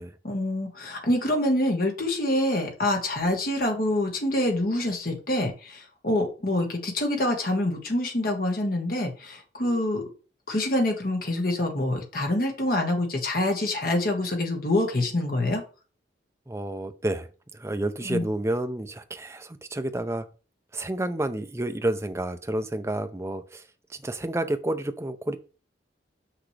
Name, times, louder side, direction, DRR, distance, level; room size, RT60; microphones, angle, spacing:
voice 1, 0.2-10.0 10.5-15.6 18.0-18.3, left 1 dB, 50° left, 2 dB, 1.5 m, -26 dB
voice 2, 16.5-20.2 20.7-23.6 24.0-25.4, right 1 dB, 15° right, 9 dB, 0.5 m, -30 dB
6.0 x 5.8 x 3.3 m, 0.36 s
head